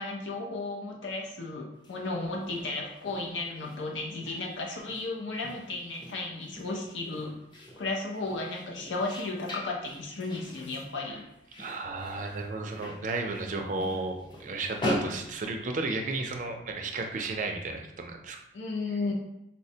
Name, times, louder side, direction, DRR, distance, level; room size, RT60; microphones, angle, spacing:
voice 1, 0.0-7.3 7.8-11.2 13.8-13.9 14.8-15.1 18.5-19.1, left 3 dB, 80° left, 0 dB, 0.5 m, -34 dB
sound 1, 1.7-16.2, left 1 dB, 25° left, 0.5 m, -41 dB
voice 2, 11.6-18.4, right 3 dB, 40° right, 3 dB, 0.4 m, -33 dB
4.2 x 2.1 x 2.7 m, 0.87 s
head